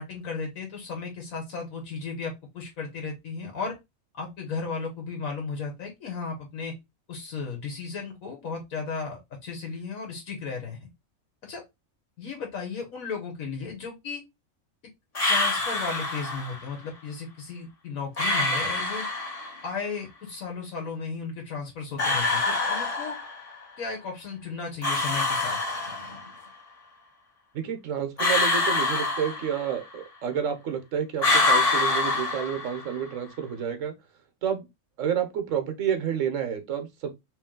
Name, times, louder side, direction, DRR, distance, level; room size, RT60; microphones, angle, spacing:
voice 1, 0.0-3.8 4.1-6.8 7.1-10.9 11.4-11.6 12.2-14.2 15.2-19.1 19.6-23.2 23.8-25.6, left 4 dB, 80° left, 1.4 m, -35 dB
sound 1, 15.1-16.6 18.2-19.6 22.0-23.5 24.8-26.4 28.2-29.9 31.2-33.0, left 3 dB, 30° left, 0.9 m, -26 dB
voice 2, 27.5-33.9 34.4-34.7 35.0-37.1, right 8 dB, 70° right, 1.2 m, -29 dB
3.2 x 3.2 x 3.6 m
omnidirectional pair, 1.4 m